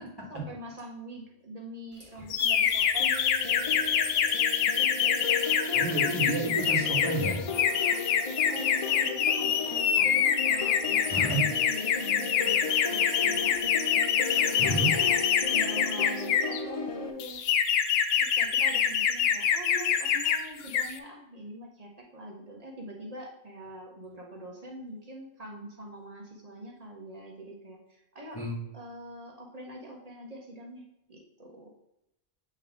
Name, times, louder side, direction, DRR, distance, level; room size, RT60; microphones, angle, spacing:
voice 1, 0.3-3.1 8.5-13.6 14.3-15.1 15.5-17.4 18.2-28.4 28.7-31.7, right 1 dB, 40° right, -1 dB, 1.4 m, -44 dB
sound 1, 2.3-16.6 17.2-20.4 20.7-21.0, left 8 dB, 75° left, 0.8 m, -26 dB
sound 2, 3.0-17.1, left 4 dB, 40° left, 0.6 m, -36 dB
voice 2, 5.7-7.4 11.1-11.4 14.6-14.9 28.3-28.5, right 2 dB, 20° left, -5 dB, 1.8 m, -30 dB
8.0 x 3.5 x 3.7 m, 0.87 s
omnidirectional pair, 1.1 m